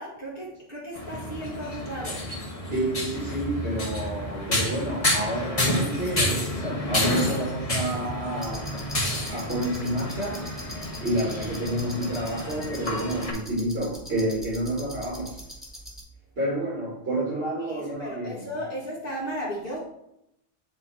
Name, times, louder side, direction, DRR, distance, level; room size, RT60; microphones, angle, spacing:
voice 1, 0.0-2.3 17.6-19.8, equal, 60° left, -5 dB, 1.6 m, -35 dB
sound 1, 1.0-13.3, left 1 dB, 35° left, 1.3 m, -30 dB
voice 2, 2.7-8.8 9.3-15.4 16.4-18.4, right 1 dB, 70° right, -9 dB, 2.4 m, -29 dB
sound 2, 8.4-16.0, equal, ahead, 1.7 m, -42 dB
8.8 x 3.1 x 4.2 m, 0.81 s
omnidirectional pair, 1.0 m